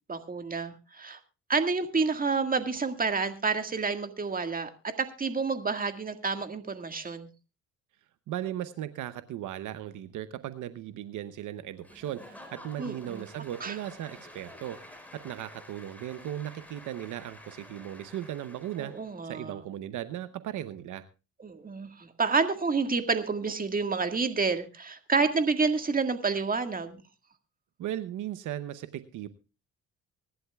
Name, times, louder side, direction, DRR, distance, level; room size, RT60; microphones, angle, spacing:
voice 1, 0.1-1.2 1.5-4.7 5.0-7.3 12.8-13.2 13.6-13.8 18.8-19.6 21.4-27.0, right 4 dB, 30° right, 8 dB, 1.8 m, -29 dB
voice 2, 8.3-14.8 15.1-18.9 19.2-21.1 27.8-29.3, right 12 dB, 80° right, 13 dB, 0.8 m, -37 dB
Applause / Crowd, 11.8-19.2, left 1 dB, 5° left, 4.6 m, -50 dB
24.5 x 11.5 x 2.3 m, 0.30 s
cardioid pair, 90°, 30 cm